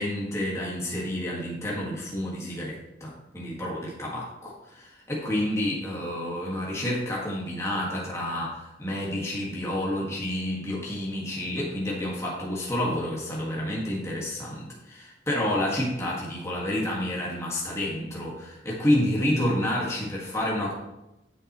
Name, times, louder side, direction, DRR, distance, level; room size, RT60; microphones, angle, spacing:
voice 1, 0.0-20.7, left 1 dB, 15° left, -5 dB, 1.7 m, -29 dB
9.0 x 7.1 x 3.0 m, 0.93 s
head